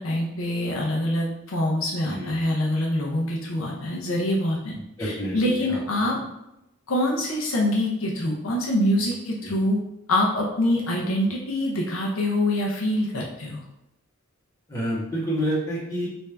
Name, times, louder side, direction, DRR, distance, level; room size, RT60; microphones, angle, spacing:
voice 1, 0.0-6.3 6.9-9.8 10.1-13.6, left 1 dB, 70° left, -2 dB, 0.6 m, -25 dB
voice 2, 2.1-2.4 4.7-5.8 9.4-9.5 14.7-16.1, equal, 15° left, -8 dB, 1.3 m, -29 dB
3.3 x 2.6 x 3.3 m, 0.89 s
head